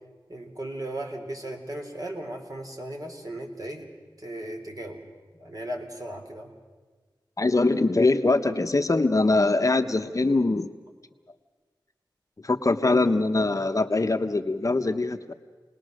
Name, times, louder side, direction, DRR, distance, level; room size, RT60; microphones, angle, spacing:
voice 1, 0.3-3.9 4.2-5.0 5.4-6.5, right 1 dB, 45° right, 2 dB, 3.3 m, -36 dB
voice 2, 7.4-10.7 12.4-15.3, left 2 dB, 40° left, 8 dB, 0.9 m, -23 dB
28.5 x 19.5 x 6.4 m, 1.4 s
wide cardioid pair, 65°, 9 cm